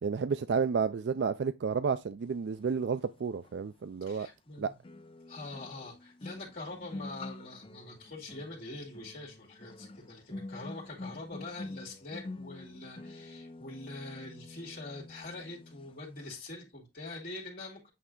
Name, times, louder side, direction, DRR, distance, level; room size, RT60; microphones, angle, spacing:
voice 1, 0.0-4.3 4.6-4.7, right 5 dB, 75° right, 0.4 m, -31 dB
sound 1, 3.4-3.5 4.8-16.5, left 2 dB, 30° left, 0.5 m, -47 dB
voice 2, 4.0-4.7 5.3-17.9, left 2 dB, 55° left, 2.5 m, -44 dB
8.5 x 3.3 x 3.7 m
head